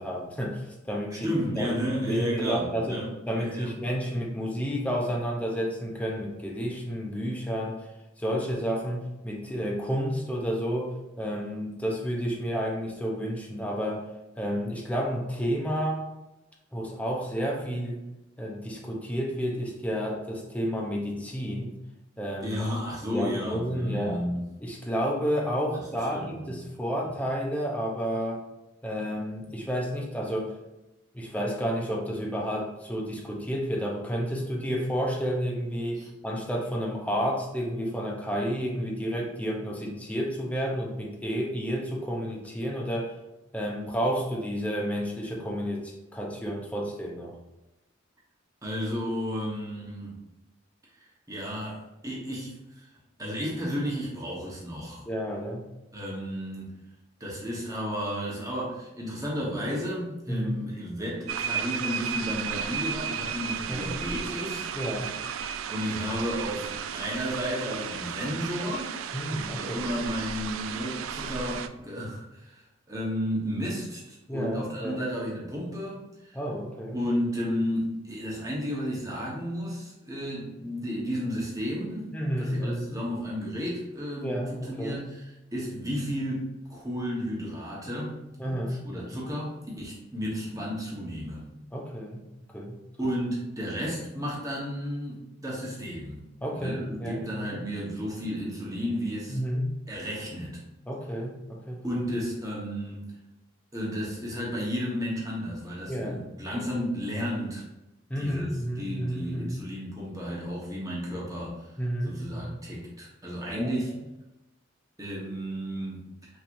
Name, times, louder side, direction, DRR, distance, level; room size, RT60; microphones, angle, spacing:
voice 1, 0.0-7.8 8.2-14.1 14.4-16.0 16.7-18.0 18.4-21.8 22.2-22.6 23.1-24.2 24.6-28.4 28.8-30.6 31.1-43.1 43.5-47.4 55.1-55.7 60.3-60.6 63.7-63.9 64.7-65.1 69.1-69.9 74.3-75.0 76.3-77.0 82.1-82.9 84.2-85.0 88.4-89.2 91.7-92.2 92.5-92.8 96.4-97.5 99.3-99.7 100.9-101.8 105.9-106.8 108.1-109.6 111.8-112.6 113.6-114.0, equal, 5° left, -1 dB, 0.7 m, -31 dB
voice 2, 1.2-3.1 3.3-3.7 22.4-24.4 25.7-26.5 35.9-36.1 48.6-50.1 50.9-52.9 53.2-55.1 55.9-56.7 57.2-64.7 65.7-68.9 69.6-76.4 76.9-82.1 82.4-91.5 93.0-96.2 96.5-99.4 99.9-100.6 101.8-103.1 103.7-107.6 108.2-108.5 108.8-111.8 112.0-113.9 115.0-116.0, equal, 15° right, -4 dB, 1.2 m, -33 dB
sound 1, 61.3-71.7, right 7 dB, 80° right, 0.3 m, -34 dB
5.9 x 3.2 x 2.6 m, 0.97 s
head